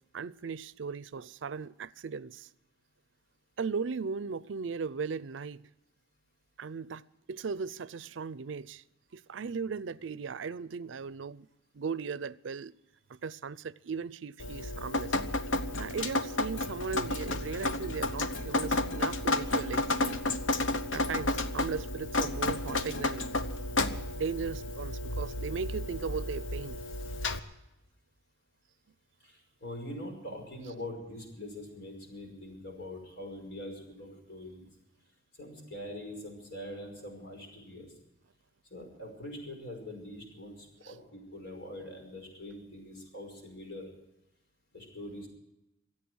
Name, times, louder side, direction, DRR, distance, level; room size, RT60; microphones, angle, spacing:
voice 1, 0.1-2.5 3.6-5.6 6.6-7.0 7.3-8.8 9.1-11.5 11.7-12.8 13.1-15.1 15.8-20.2 20.9-23.3 24.1-26.8, right 5 dB, 75° right, 0.5 m, -37 dB
Drip, 14.4-27.4, left 2 dB, 80° left, 1.0 m, -32 dB
voice 2, 29.2-34.7 35.4-37.9 38.7-43.9 44.7-45.3, left 1 dB, 65° left, 5.4 m, -43 dB
25.0 x 8.8 x 6.2 m
head